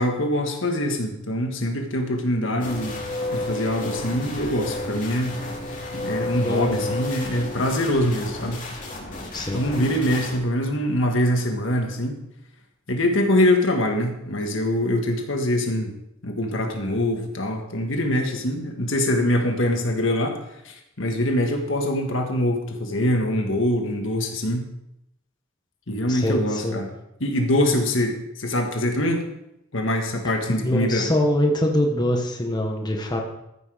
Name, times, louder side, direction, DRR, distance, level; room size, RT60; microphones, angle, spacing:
voice 1, 0.0-3.0 3.3-5.3 5.9-8.6 9.5-12.2 12.9-15.9 16.2-20.4 20.7-24.7 25.9-26.9 27.2-29.2 29.7-31.1, left 1 dB, 65° left, 3 dB, 1.6 m, -24 dB
sound 1, 2.6-10.4, left 2 dB, 40° left, 2.6 m, -32 dB
voice 2, 6.4-7.0 9.3-9.6 26.1-26.8 30.5-33.2, left 1 dB, 20° left, 1 dB, 1.2 m, -24 dB
14.0 x 6.2 x 5.0 m, 0.82 s
head